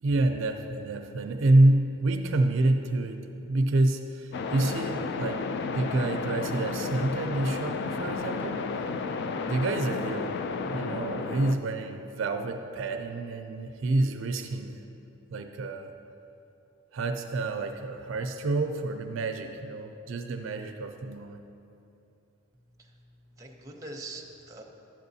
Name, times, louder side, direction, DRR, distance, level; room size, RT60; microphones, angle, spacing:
voice 1, 0.0-5.4 5.7-8.7 9.5-10.3 10.7-14.8 15.3-15.9 16.9-21.4, right 2 dB, 65° right, 6 dB, 0.4 m, -27 dB
sound 1, 4.3-11.6, left 4 dB, 55° left, 0.3 m, -32 dB
voice 2, 22.5-24.6, right 2 dB, 15° right, 0 dB, 0.7 m, -44 dB
11.5 x 7.4 x 2.7 m, 2.8 s
head